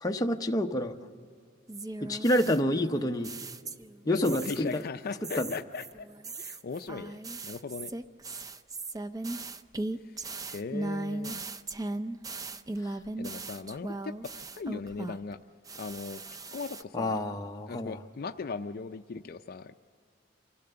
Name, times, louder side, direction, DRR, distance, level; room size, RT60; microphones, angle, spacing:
voice 1, 0.0-1.0 2.0-3.3 4.1-4.8 5.4-5.5 16.9-18.0, left 1 dB, 20° left, 4 dB, 0.8 m, -28 dB
sound 1, 1.7-4.0 4.2-4.8 5.2-15.3 15.7-16.8, right 2 dB, 20° right, 0.5 m, -38 dB
voice 2, 4.0-6.1 6.4-7.9 10.0-11.4 13.1-15.4 15.7-16.2 16.5-17.2 17.7-19.7, left 4 dB, 50° left, 8 dB, 0.4 m, -38 dB
25.5 x 15.5 x 6.8 m, 2.2 s
head